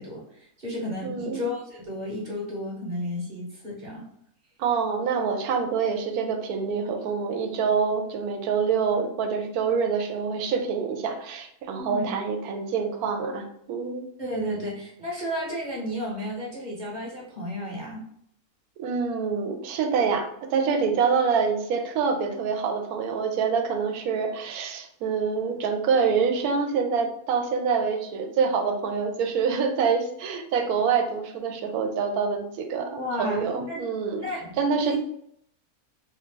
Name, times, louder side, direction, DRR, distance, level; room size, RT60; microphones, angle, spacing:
voice 1, 0.0-4.0 11.8-12.1 14.2-18.0 32.9-33.8 34.2-34.6 34.8-35.0, equal, 35° right, -4 dB, 1.0 m, -32 dB
voice 2, 1.0-1.4 4.6-14.1 18.8-34.2 34.6-35.0, right 5 dB, 80° right, 5 dB, 1.0 m, -26 dB
2.9 x 2.4 x 3.7 m, 0.69 s
omnidirectional pair, 1.6 m